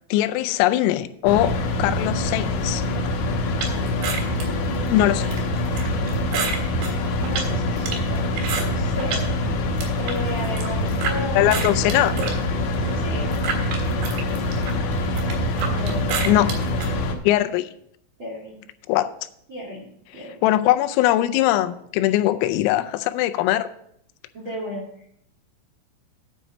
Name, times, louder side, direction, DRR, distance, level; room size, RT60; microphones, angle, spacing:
voice 1, 0.1-2.8 4.9-5.3 11.4-12.1 16.3-16.5 17.2-17.7 18.9-19.1 20.4-23.7, left 14 dB, 90° left, 10 dB, 3.3 m, -21 dB
sound 1, 1.3-17.2, left 2 dB, 70° left, 2.5 m, -25 dB
sound 2, 3.6-9.3 9.6-11.2 11.5-16.9, right 5 dB, 80° right, 4.3 m, -30 dB
voice 2, 4.6-6.6 7.2-9.6 10.0-11.8 12.9-13.3 15.6-16.5 18.2-18.6 19.5-20.4 24.3-25.1, equal, 50° right, -3 dB, 1.4 m, -35 dB
9.1 x 5.2 x 7.6 m, 0.71 s
omnidirectional pair, 5.8 m